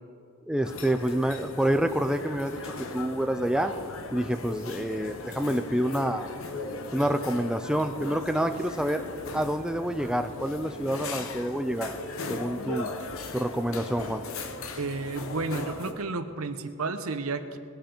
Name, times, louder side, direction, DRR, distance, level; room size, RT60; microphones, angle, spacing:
voice 1, 0.5-3.7 4.1-6.3 6.9-9.0 9.3-12.0 12.3-12.9 13.3-14.2, right 1 dB, 5° right, 7 dB, 0.4 m, -28 dB
sound 1, 0.6-15.9, left 3 dB, 65° left, 0.9 m, -38 dB
voice 2, 14.8-17.6, right 3 dB, 80° right, 10 dB, 0.9 m, -32 dB
20.0 x 10.5 x 4.4 m, 2.4 s
head